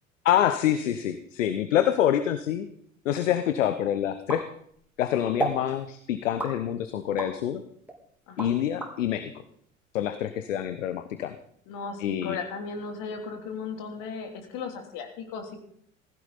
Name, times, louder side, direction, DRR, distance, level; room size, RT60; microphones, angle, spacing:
voice 1, 0.2-2.7 3.0-4.4 5.0-7.6 8.4-9.3 9.9-11.4 12.0-12.4, left 11 dB, 70° left, 11 dB, 1.0 m, -26 dB
sound 1, 4.3-5.0 5.4-5.7 6.4-7.4 7.9-8.9, right 2 dB, 5° right, 3.4 m, -32 dB
voice 2, 11.7-15.6, left 5 dB, 50° left, 4 dB, 3.3 m, -36 dB
18.0 x 15.5 x 4.2 m, 0.66 s
figure-of-eight pair, 70°, 40 cm